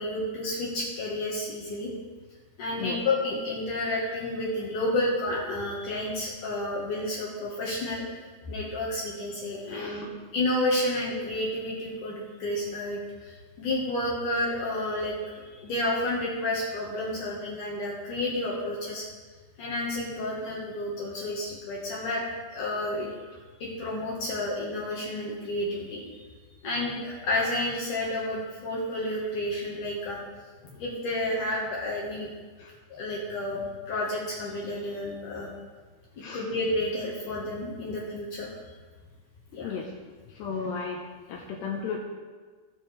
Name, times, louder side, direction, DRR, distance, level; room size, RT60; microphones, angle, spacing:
voice 1, 0.0-1.9 2.6-8.2 8.5-10.1 10.3-19.1 19.6-23.1 23.6-26.0 26.6-30.2 30.6-32.3 32.9-35.5 36.1-38.5 39.5-39.7, left 1 dB, 60° left, -4 dB, 2.1 m, -30 dB
voice 2, 9.7-10.1 32.6-32.7 36.2-36.4 39.6-39.9 40.3-41.0 41.3-42.0, left 6 dB, 80° left, 0 dB, 2.5 m, -34 dB
17.5 x 7.5 x 3.4 m, 1.4 s
omnidirectional pair, 5.9 m